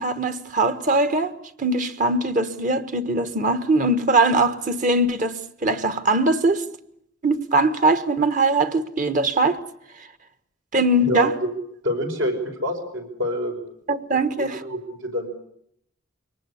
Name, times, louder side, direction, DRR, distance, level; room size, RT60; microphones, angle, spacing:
voice 1, 0.0-1.3 1.6-6.6 7.2-9.6 10.7-11.3 13.9-14.6, right 2 dB, 40° right, 1.4 m, -21 dB
voice 2, 11.0-11.5 11.8-13.6 14.2-15.3, left 1 dB, 70° right, 5.2 m, -27 dB
24.0 x 19.0 x 9.8 m
head